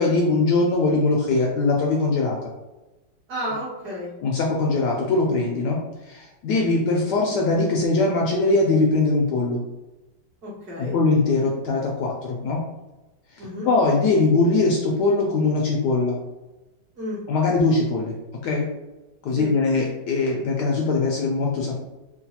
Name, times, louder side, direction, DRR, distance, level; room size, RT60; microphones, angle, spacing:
voice 1, 0.0-2.5 4.2-9.6 10.8-12.6 13.3-16.2 17.3-18.2 18.4-18.7 19.2-21.8, left 3 dB, 75° left, -1 dB, 1.0 m, -21 dB
voice 2, 3.3-4.1 10.4-11.0 13.4-13.7 17.0-17.2 19.4-19.5, equal, 55° right, -7 dB, 1.7 m, -31 dB
3.8 x 2.2 x 2.8 m, 1.1 s
omnidirectional pair, 2.1 m